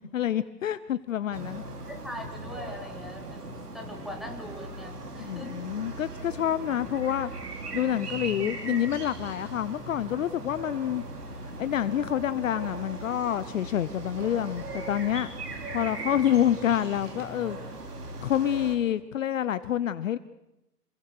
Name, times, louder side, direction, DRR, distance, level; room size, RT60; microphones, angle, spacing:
voice 1, 0.1-1.6 5.2-11.0 11.6-15.3 15.7-17.6 18.2-20.2, left 10 dB, 55° left, 15 dB, 1.0 m, -28 dB
sound 1, 1.3-18.8, right 2 dB, 75° right, 4.7 m, -39 dB
voice 2, 1.9-5.7, left 1 dB, ahead, 2 dB, 3.5 m, -41 dB
27.5 x 22.0 x 6.7 m, 0.89 s
figure-of-eight pair, 125°, 47 cm